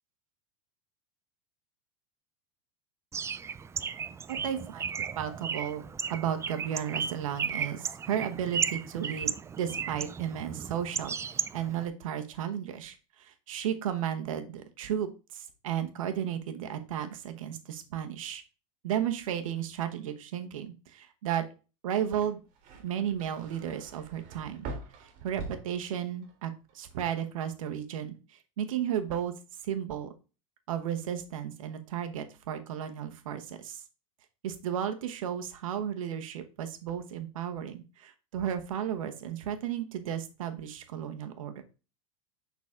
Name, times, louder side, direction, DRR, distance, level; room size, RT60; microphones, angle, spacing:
Bird, 3.1-11.9, right 6 dB, 15° right, 0.3 m, -35 dB
voice 1, 4.4-5.8 6.1-18.4 18.8-21.4 21.8-22.4 22.8-24.6 25.0-29.3 29.6-30.1 30.7-33.8 34.4-41.6, right 9 dB, 80° right, 7 dB, 1.1 m, -34 dB
sound 1, 22.2-26.4 26.7-27.3, right 3 dB, 50° right, 1.7 m, -44 dB
6.4 x 4.0 x 3.6 m, 0.32 s
hypercardioid pair, 110°, 17 cm